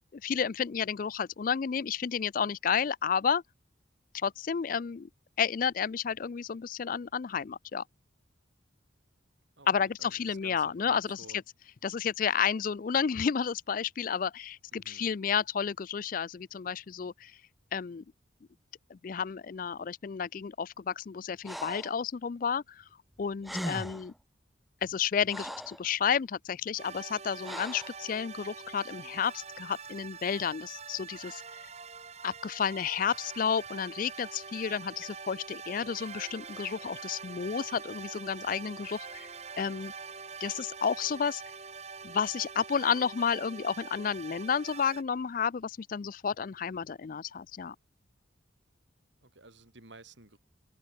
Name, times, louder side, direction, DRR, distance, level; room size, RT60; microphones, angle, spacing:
voice 1, 0.1-3.4 4.1-5.1 5.4-7.8 9.7-11.4 11.8-17.3 17.7-18.0 18.9-22.8 23.2-24.1 24.8-31.4 32.2-39.3 39.6-39.9 40.4-41.4 42.0-47.8, left 7 dB, 45° left, 0.4 m, -31 dB
voice 2, 9.6-11.4 14.8-15.1 23.9-24.0 49.2-50.4, right 2 dB, 65° right, 4.3 m, -53 dB
Breathing, 21.4-22.0 23.1-23.2 23.4-24.1 24.8-25.8 27.4-28.0, equal, ahead, 1.3 m, -39 dB
sound 1, 26.8-45.0, right 5 dB, 35° right, 3.4 m, -45 dB
head